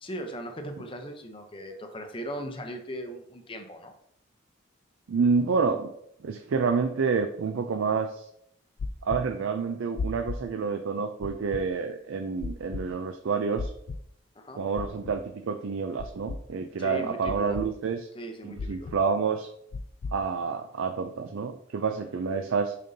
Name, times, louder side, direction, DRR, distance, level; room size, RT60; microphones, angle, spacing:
voice 1, 0.0-3.9 14.4-14.6 16.8-17.6 18.1-18.9, equal, 25° left, 5 dB, 0.7 m, -38 dB
voice 2, 5.1-5.9 6.2-8.3 9.0-13.7 14.6-18.0 18.4-19.5 20.1-22.7, right 5 dB, 75° right, 7 dB, 0.4 m, -28 dB
sound 1, 8.8-9.2 10.0-10.4 11.2-11.6 12.4-12.8 13.6-14.0 14.8-15.2 16.0-16.4 17.3-17.7 18.6-19.0 19.7-20.1, left 4 dB, 55° left, 0.3 m, -33 dB
6.6 x 5.2 x 2.7 m, 0.73 s
head